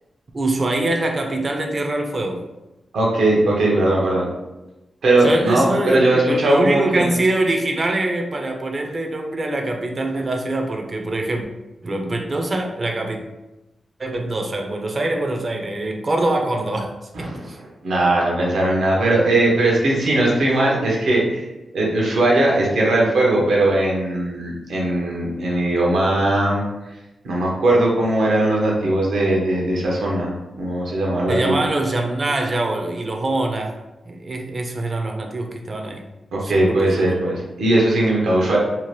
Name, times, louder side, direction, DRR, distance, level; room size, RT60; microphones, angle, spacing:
voice 1, 0.3-2.4 5.2-11.4 11.8-13.2 14.0-16.9 17.2-17.6 31.3-33.8 34.1-36.0 36.4-37.0, right 2 dB, 40° right, 3 dB, 0.5 m, -24 dB
voice 2, 2.9-4.3 5.0-7.1 17.1-17.5 17.8-21.4 21.7-26.6 27.2-31.6 36.3-38.6, right 1 dB, 85° right, -3 dB, 0.8 m, -19 dB
2.8 x 2.1 x 3.1 m, 1.0 s
cardioid pair, 75°, 0 cm